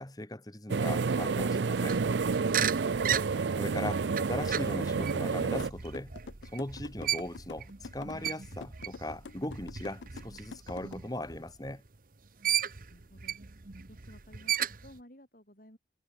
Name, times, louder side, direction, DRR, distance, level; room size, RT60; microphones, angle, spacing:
voice 1, 0.0-2.0 3.6-6.1 6.5-11.8, left 1 dB, 20° left, 1.9 m, -39 dB
sound 1, 0.7-5.7, right 4 dB, 75° right, 0.5 m, -29 dB
sound 2, 1.9-12.0 12.4-15.0, right 9 dB, 50° right, 1.1 m, -36 dB
sound 3, 5.6-10.9, left 4 dB, 75° left, 0.5 m, -45 dB
voice 2, 12.7-13.4 13.9-15.8, equal, 50° left, 7.9 m, -56 dB
head